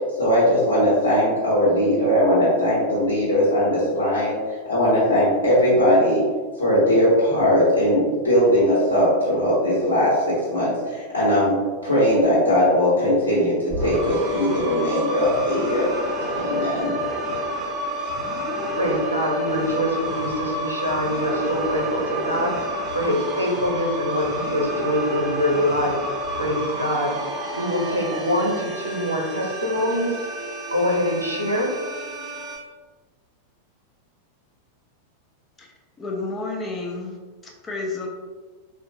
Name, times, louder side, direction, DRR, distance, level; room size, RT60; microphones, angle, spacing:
voice 1, 0.2-4.4 4.7-6.2 6.6-11.6 11.8-15.9 16.3-17.0, equal, 80° left, -10 dB, 1.1 m, -19 dB
sound 1, 13.7-32.6, equal, 20° right, 0.8 m, -29 dB
voice 2, 18.8-26.0 26.3-31.7, equal, 90° right, -2 dB, 0.7 m, -24 dB
voice 3, 36.0-37.2 37.7-38.1, left 3 dB, 20° left, 1 dB, 0.5 m, -29 dB
3.6 x 2.4 x 2.7 m, 1.4 s
figure-of-eight pair, 90°, 0 cm